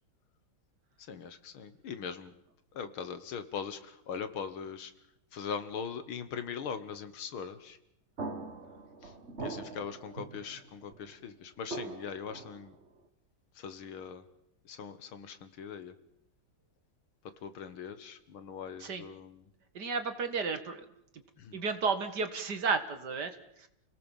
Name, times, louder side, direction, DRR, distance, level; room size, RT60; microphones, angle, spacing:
voice 1, 1.0-2.3 2.7-4.9 5.3-7.8 9.0-9.1 9.4-12.8 13.6-14.2 14.6-15.9 17.2-19.5 21.4-21.6, left 6 dB, 80° left, 11 dB, 2.3 m, -41 dB
sound 1, 8.2-11.1 11.7-13.0, right 3 dB, 35° right, 2.1 m, -42 dB
voice 2, 19.7-20.9 21.5-23.7, right 4 dB, 55° right, 9 dB, 2.2 m, -33 dB
29.5 x 18.0 x 7.3 m, 0.79 s
omnidirectional pair, 2.3 m